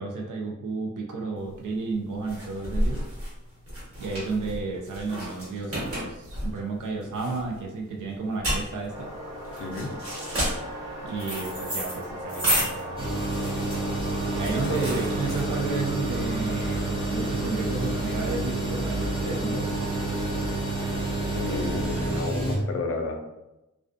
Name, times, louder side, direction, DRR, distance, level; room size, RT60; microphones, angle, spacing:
voice 1, 0.0-3.0 4.0-9.1 11.0-13.0 14.3-20.0, right 3 dB, 90° right, 0 dB, 0.5 m, -32 dB
sound 1, 1.5-15.8, equal, 50° right, 1.2 m, -32 dB
sound 2, 8.9-22.2, equal, 70° right, 1.2 m, -38 dB
sound 3, 13.0-22.6, right 2 dB, 20° right, 0.6 m, -29 dB
voice 2, 21.3-23.2, left 3 dB, 50° left, 2 dB, 0.4 m, -31 dB
2.4 x 2.2 x 2.4 m, 0.95 s
wide cardioid pair, 110°, 30 cm